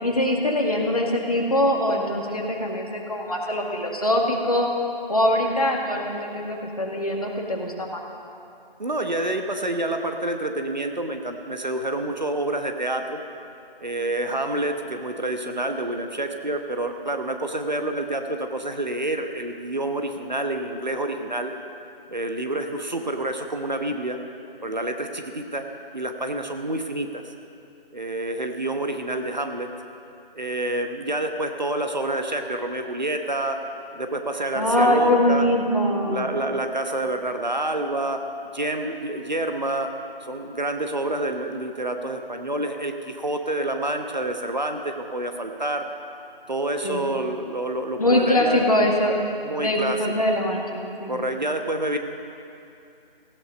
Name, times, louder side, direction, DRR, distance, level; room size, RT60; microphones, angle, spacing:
voice 1, 0.0-4.7 5.1-8.0 34.6-36.3 46.8-47.0 48.0-49.2 49.6-51.2, left 1 dB, 40° left, 0 dB, 1.9 m, -23 dB
voice 2, 8.8-13.2 13.8-21.5 22.1-24.2 24.6-25.7 25.9-27.2 27.9-29.7 30.3-33.6 33.9-35.5 36.0-38.2 38.5-39.9 40.2-45.8 46.5-48.6 49.4-50.0 51.1-52.0, right 1 dB, 50° right, 5 dB, 1.1 m, -28 dB
17.0 x 15.5 x 5.2 m, 2.6 s
figure-of-eight pair, 175°, 30 cm